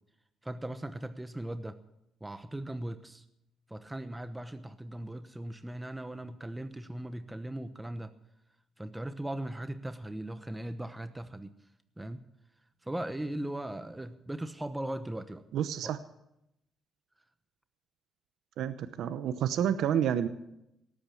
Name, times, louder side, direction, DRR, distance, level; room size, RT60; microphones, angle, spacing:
voice 1, 0.4-1.8 2.2-3.2 3.7-8.1 8.8-11.5 12.0-12.2 12.8-15.4 15.8-15.9, right 1 dB, 10° right, 10 dB, 1.0 m, -38 dB
voice 2, 15.5-16.0 18.6-20.3, right 9 dB, 80° right, 12 dB, 0.8 m, -29 dB
18.0 x 8.8 x 8.4 m, 0.84 s
cardioid pair, 90°, 0 cm